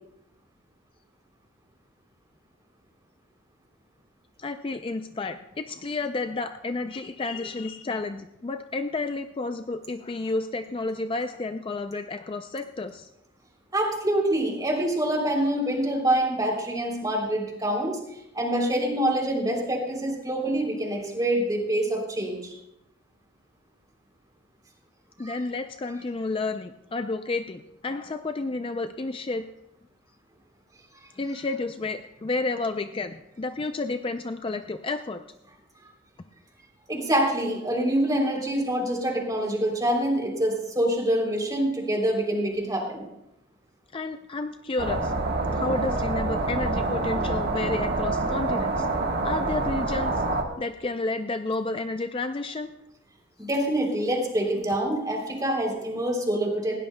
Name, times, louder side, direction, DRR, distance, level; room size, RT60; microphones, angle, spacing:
voice 1, 4.4-13.1 25.2-29.4 31.2-35.2 43.9-45.1 45.5-48.9 49.2-50.2 50.6-52.7, left 3 dB, 25° left, 8 dB, 0.4 m, -31 dB
voice 2, 13.7-18.0 18.3-22.5 25.2-25.4 36.9-43.1 53.4-56.8, right 1 dB, 20° right, 1 dB, 3.2 m, -26 dB
sound 1, 44.8-50.4, right 2 dB, 55° right, 1.3 m, -26 dB
19.5 x 17.0 x 2.2 m, 0.85 s
head